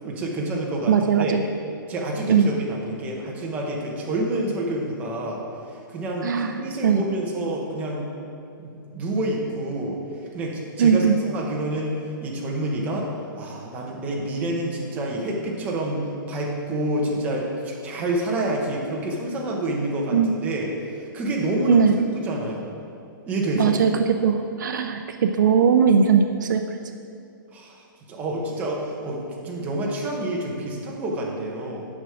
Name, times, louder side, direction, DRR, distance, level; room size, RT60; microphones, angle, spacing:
voice 1, 0.0-1.4 1.9-5.4 5.7-8.0 8.6-10.0 10.3-13.1 13.4-16.0 16.3-21.9 22.2-22.7 23.3-23.7 27.5-31.8, right 1 dB, 15° right, -2 dB, 1.0 m, -28 dB
voice 2, 0.9-1.4 2.3-2.5 6.2-7.1 10.8-11.2 20.1-20.3 21.7-22.0 23.5-26.8, right 7 dB, 60° right, 6 dB, 0.5 m, -19 dB
9.9 x 6.1 x 5.0 m, 2.5 s
hypercardioid pair, 170°, 12 cm